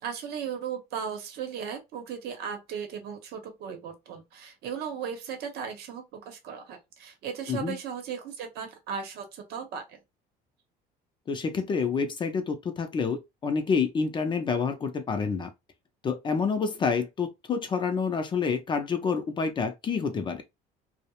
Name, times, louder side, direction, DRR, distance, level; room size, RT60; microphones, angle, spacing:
voice 1, 0.0-10.0, right 7 dB, 70° right, 0.8 m, -36 dB
voice 2, 11.3-15.5 16.0-20.4, left 5 dB, 30° left, 0.4 m, -28 dB
2.3 x 2.0 x 2.8 m
cardioid pair, 130°, 17 cm